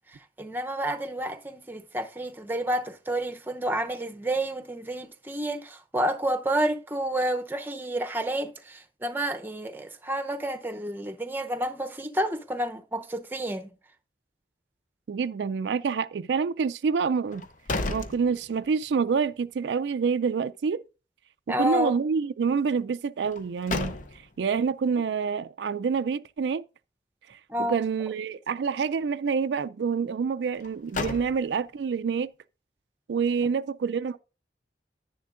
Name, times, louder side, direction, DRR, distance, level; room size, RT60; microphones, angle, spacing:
voice 1, 0.4-13.7 21.5-22.0 27.5-27.8, right 1 dB, 10° right, 0.7 m, -30 dB
voice 2, 15.1-17.4 17.9-20.8 21.5-24.0 24.4-26.6 27.3-32.3 33.1-34.2, right 5 dB, 75° right, 0.4 m, -27 dB
sound 1, 17.3-18.9 19.3-19.4 23.2-24.5 30.5-31.8, left 3 dB, 45° left, 0.7 m, -34 dB
10.0 x 10.0 x 2.5 m
head